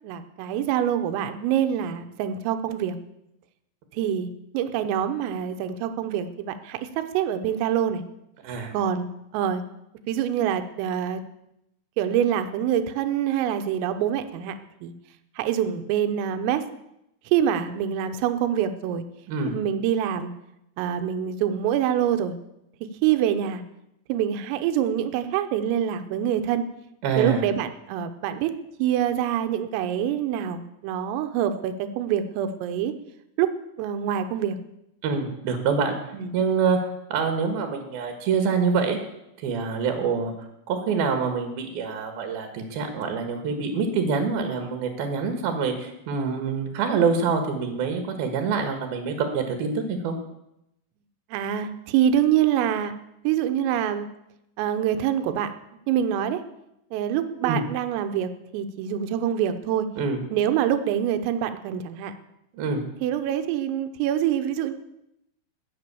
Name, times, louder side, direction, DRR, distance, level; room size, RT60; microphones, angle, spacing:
voice 1, 0.0-3.0 3.9-8.0 8.7-9.1 9.3-9.6 10.1-11.2 12.0-14.6 14.8-14.9 15.4-16.6 17.3-19.0 19.5-20.3 20.8-22.4 23.0-23.6 24.1-26.7 27.2-28.5 28.8-32.9 33.4-33.5 33.8-34.6 36.1-36.3 51.3-52.9 53.3-54.1 54.6-55.5 55.9-56.4 56.9-59.9 60.3-62.1 63.0-64.7, right 10 dB, 80° right, 9 dB, 3.6 m, -25 dB
voice 2, 8.4-8.7 19.3-19.6 27.0-27.4 35.0-36.0 36.3-39.0 39.4-40.3 40.7-50.2 57.4-57.6 60.0-60.2 62.5-62.8, right 5 dB, 60° right, 5 dB, 2.8 m, -26 dB
20.5 x 7.8 x 7.0 m, 0.84 s
omnidirectional pair, 6.0 m